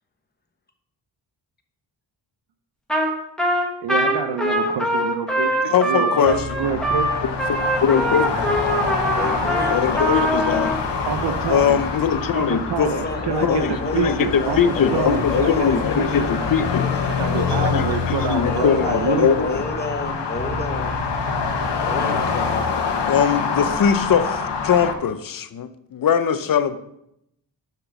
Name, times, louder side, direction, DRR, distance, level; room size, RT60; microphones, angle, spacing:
Trumpet, 2.9-3.1 3.4-10.8, equal, ahead, 1.4 m, -23 dB
voice 1, 3.8-5.5 5.8-7.1 11.0-11.8 12.3-15.5 16.0-16.3 17.2-19.3, right 7 dB, 75° right, 6 dB, 0.7 m, -26 dB
voice 2, 5.4-6.7 7.2-8.3 9.7-10.7 11.5-12.9 13.2-16.8 17.2-19.6 22.1-22.2 23.1-26.8, left 7 dB, 50° left, 11 dB, 0.6 m, -21 dB
sound 1, 6.2-22.0, equal, 35° right, 0.9 m, -36 dB
sound 2, 6.6-24.9, left 5 dB, 75° left, 1.2 m, -26 dB
voice 3, 9.1-10.1 12.9-17.9 18.4-21.0 21.8-22.6, left 2 dB, 25° left, 5 dB, 1.1 m, -31 dB
6.7 x 5.9 x 6.0 m, 0.78 s
wide cardioid pair, 140°, 42 cm